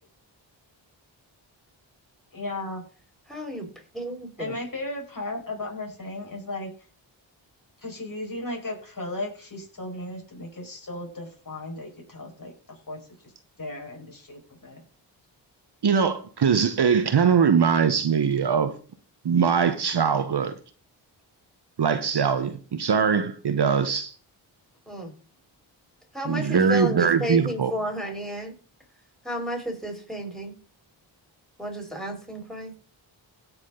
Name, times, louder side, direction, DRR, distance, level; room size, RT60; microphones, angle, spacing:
voice 1, 2.3-2.8 4.4-6.7 7.8-13.0 13.6-14.8 26.5-26.7, left 2 dB, 40° left, 5.0 m, -35 dB
voice 2, 3.3-3.7 3.9-4.6 24.9-25.1 26.1-28.5 29.2-30.5 31.6-32.7, equal, ahead, 5.1 m, -32 dB
voice 3, 15.8-18.7 19.2-20.6 21.8-24.1 26.2-27.7, right 6 dB, 55° right, 1.0 m, -22 dB
16.5 x 6.3 x 3.8 m
cardioid pair, 40°, 49 cm